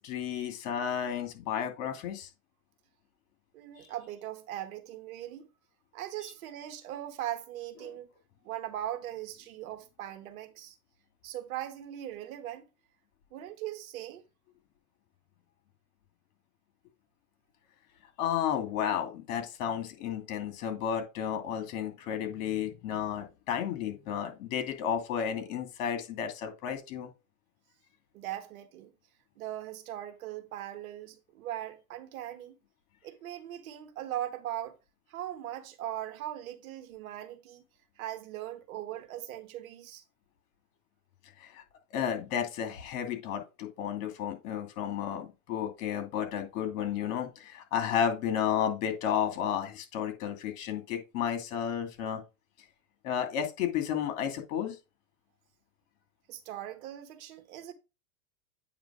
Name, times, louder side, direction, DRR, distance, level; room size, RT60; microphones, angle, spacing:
voice 1, 0.0-2.3 3.8-3.9 18.2-27.1 41.4-41.6 41.9-52.2 53.0-54.8, left 8 dB, 60° left, 2.6 m, -32 dB
voice 2, 3.5-5.5 5.9-8.1 8.4-10.8 11.2-12.6 13.3-14.2 28.1-28.9 29.4-32.5 33.0-34.8 35.1-37.6 38.0-40.0 56.3-57.7, right 12 dB, 65° right, 1.5 m, -39 dB
8.7 x 3.2 x 4.9 m
supercardioid pair, 130°, 44 cm